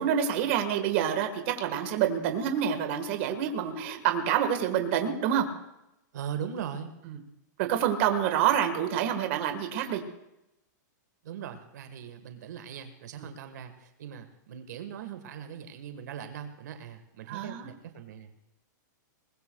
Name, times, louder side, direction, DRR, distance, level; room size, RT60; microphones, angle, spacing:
voice 1, 0.0-5.5 7.1-7.2 7.6-10.0 17.3-17.7, right 9 dB, 40° right, 6 dB, 1.5 m, -27 dB
voice 2, 6.1-6.9 11.2-18.5, right 8 dB, 65° right, 7 dB, 1.4 m, -40 dB
22.0 x 20.0 x 2.3 m, 0.89 s
supercardioid pair, 170°, 10 cm